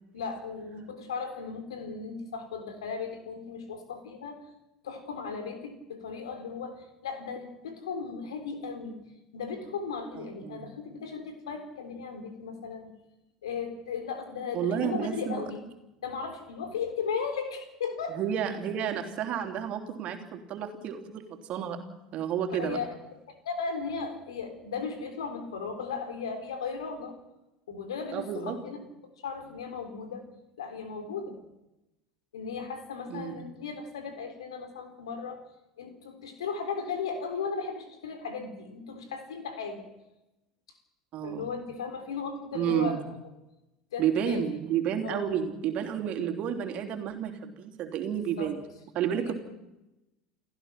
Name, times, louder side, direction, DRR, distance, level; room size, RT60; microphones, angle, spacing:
voice 1, 0.1-4.4 4.8-8.9 9.3-12.9 13.4-15.6 16.0-18.2 22.5-22.9 23.3-27.2 27.7-28.8 29.2-30.3 30.6-31.4 32.3-35.4 35.8-39.9 41.2-43.0 43.9-44.4 45.0-45.3 48.1-48.5 49.2-49.3, left 5 dB, 75° left, 7 dB, 3.8 m, -36 dB
voice 2, 10.2-10.7 14.5-15.4 18.1-21.8 22.1-22.8 28.1-28.6 33.1-33.4 41.1-41.5 42.5-43.0 44.0-48.6 49.0-49.3, right 9 dB, 45° right, 5 dB, 3.5 m, -31 dB
29.5 x 15.0 x 6.0 m, 0.94 s
figure-of-eight pair, 75°, 3 cm